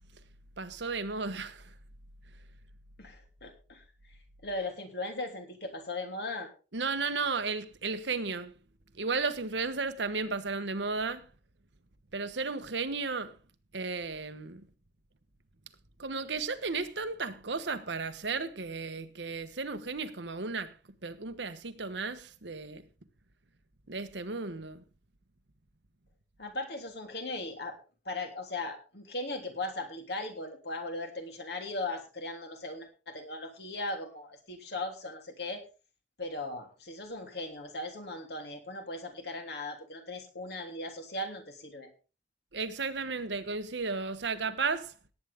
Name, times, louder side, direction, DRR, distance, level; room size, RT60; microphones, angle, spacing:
voice 1, 0.6-1.6 6.7-8.5 9.0-11.3 12.1-13.3 13.7-14.6 16.0-20.7 21.0-22.8 23.9-24.8 42.5-44.9, right 4 dB, 75° right, 1.2 m, -34 dB
voice 2, 3.0-3.8 4.4-6.5 26.4-27.8 28.0-35.6 36.2-41.9, left 2 dB, 60° left, 3.2 m, -38 dB
18.0 x 9.3 x 3.6 m
head